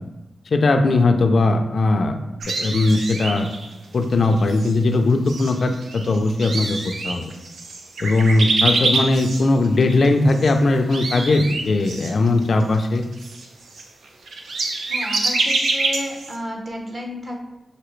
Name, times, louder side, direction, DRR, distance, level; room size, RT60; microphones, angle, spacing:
voice 1, 0.5-2.2 2.6-3.5 3.9-7.3 8.0-13.0, left 2 dB, 50° left, 5 dB, 0.4 m, -19 dB
sound 1, 2.4-3.7 4.2-4.7 5.3-10.5 10.8-16.4, right 3 dB, 90° right, 0.5 m, -25 dB
voice 2, 14.9-17.3, left 1 dB, 35° right, 0 dB, 0.8 m, -32 dB
5.9 x 2.7 x 3.1 m, 0.93 s
wide cardioid pair, 170°, 0 cm